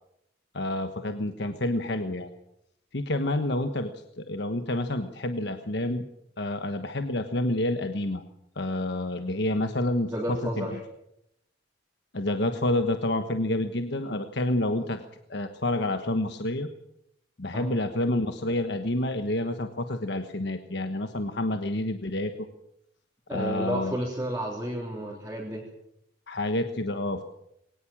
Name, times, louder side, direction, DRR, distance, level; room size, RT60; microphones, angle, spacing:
voice 1, 0.5-2.3 2.9-3.9 4.2-6.0 6.4-8.2 8.6-10.7 12.1-15.0 15.3-16.7 17.4-22.5 23.3-24.0 26.3-27.2, left 1 dB, 60° left, 7 dB, 1.3 m, -28 dB
voice 2, 10.1-10.8 17.5-17.8 23.3-25.6, right 1 dB, 10° right, -4 dB, 3.6 m, -32 dB
22.5 x 19.0 x 7.4 m, 0.78 s
head